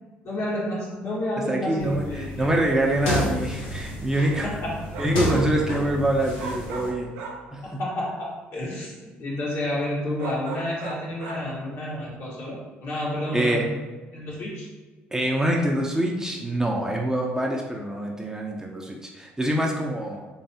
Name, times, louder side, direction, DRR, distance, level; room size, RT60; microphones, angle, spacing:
voice 1, 0.2-2.5 4.4-5.0 7.6-13.7 14.1-14.7, left 1 dB, 60° left, -5 dB, 1.5 m, -30 dB
voice 2, 1.5-4.5 5.0-7.1 7.5-7.8 13.3-13.7 15.1-20.3, right 1 dB, 10° right, 0 dB, 0.6 m, -25 dB
sound 1, 1.8-6.9, left 1 dB, 80° left, 0.7 m, -31 dB
sound 2, 4.9-5.6 6.4-7.5 10.2-11.5, right 5 dB, 75° right, 0.6 m, -37 dB
3.4 x 3.1 x 2.8 m, 1.3 s
hypercardioid pair, 55°, 5 cm